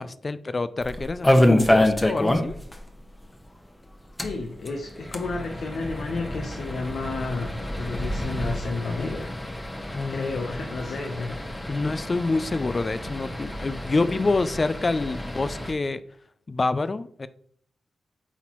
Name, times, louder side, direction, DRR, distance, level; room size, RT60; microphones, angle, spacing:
voice 1, 0.0-2.5 9.9-10.3 11.7-16.0 16.5-17.3, left 3 dB, 40° left, 14 dB, 0.4 m, -27 dB
sound 1, 0.8-2.8 3.0-3.1 3.4-3.5 4.0-15.7, left 1 dB, 20° left, 1.0 m, -27 dB
voice 2, 4.2-9.3 10.1-11.4, left 3 dB, 75° left, 3 dB, 0.8 m, -31 dB
8.0 x 4.2 x 3.0 m, 0.62 s
supercardioid pair, 45°, 0 cm